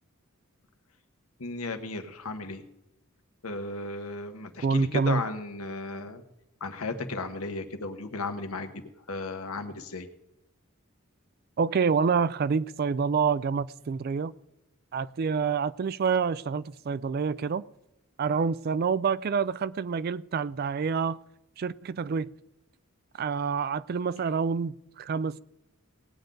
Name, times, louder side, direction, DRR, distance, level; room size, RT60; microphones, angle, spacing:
voice 1, 1.4-2.6 3.4-6.2 6.6-10.1, left 3 dB, 85° left, 1.3 m, -35 dB
voice 2, 4.6-5.2 11.6-14.3 14.9-17.6 18.2-21.2 21.6-22.3 23.2-25.4, right 5 dB, 45° right, 0.3 m, -27 dB
18.5 x 8.9 x 3.9 m
head